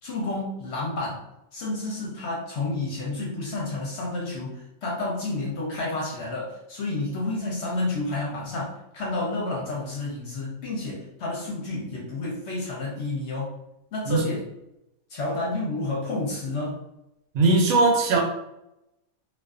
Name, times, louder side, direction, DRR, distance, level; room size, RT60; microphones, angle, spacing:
voice 1, 0.0-1.2 1.5-13.5 13.9-14.5 15.1-16.8, left 2 dB, 60° left, -4 dB, 0.8 m, -30 dB
voice 2, 17.3-18.2, right 3 dB, 75° right, 1 dB, 1.0 m, -19 dB
2.4 x 2.3 x 2.4 m, 0.87 s
omnidirectional pair, 1.6 m